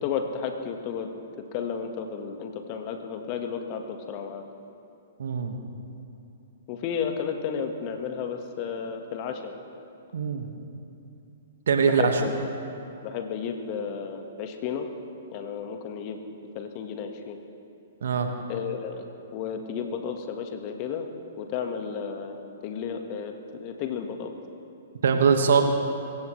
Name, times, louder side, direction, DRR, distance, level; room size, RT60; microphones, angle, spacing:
voice 1, 0.0-1.1 1.5-4.4 6.7-9.5 11.8-12.3 13.0-14.9 15.3-16.2 16.5-17.4 18.5-19.1 19.3-21.1 21.4-24.3, left 7 dB, 40° left, 5 dB, 1.5 m, -33 dB
voice 2, 5.2-5.6 10.1-10.5 11.7-12.2 18.0-18.3 25.0-25.6, right 6 dB, 65° right, 5 dB, 1.6 m, -22 dB
24.5 x 15.5 x 3.2 m, 2.7 s
figure-of-eight pair, 115°, 0 cm